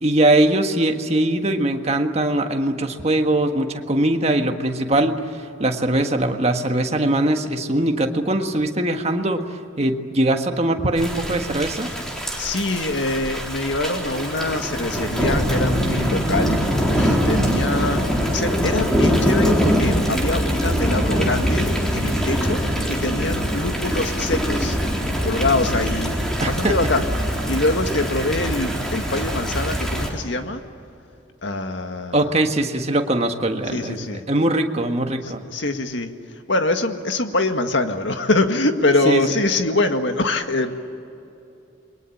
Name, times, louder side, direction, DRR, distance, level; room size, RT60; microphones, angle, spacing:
voice 1, 0.0-11.9 26.4-26.8 32.1-35.4 39.1-39.2, right 1 dB, 35° right, 5 dB, 1.6 m, -21 dB
Thunder / Rain, 11.0-30.1, equal, 5° left, 4.0 m, -23 dB
voice 2, 12.4-24.8 25.2-26.2 26.5-27.1 27.5-30.6 31.4-32.3 33.7-34.2 35.2-36.1 36.5-40.8, left 2 dB, 65° left, 6 dB, 1.9 m, -24 dB
28.5 x 22.5 x 8.6 m, 2.8 s
head